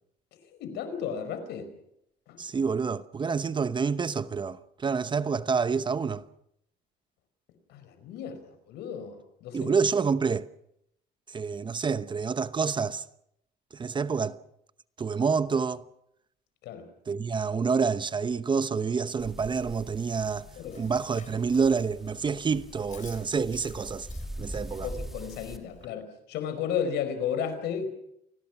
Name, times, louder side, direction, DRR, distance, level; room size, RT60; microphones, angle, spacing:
voice 1, 0.5-1.7 2.3-2.4 7.7-9.7 16.6-16.9 20.6-20.8 24.4-27.9, left 7 dB, 85° left, 4.9 m, -34 dB
voice 2, 2.4-6.2 9.5-10.5 11.3-13.0 13.7-14.4 15.0-15.8 17.1-20.5 20.8-24.1 24.4-24.9, right 5 dB, 30° right, 0.9 m, -28 dB
sound 1, 19.2-25.6, right 1 dB, ahead, 2.7 m, -43 dB
Chewing mastication, 20.1-25.9, left 7 dB, 45° left, 3.4 m, -51 dB
29.0 x 20.5 x 6.0 m
cardioid pair, 110°, 17 cm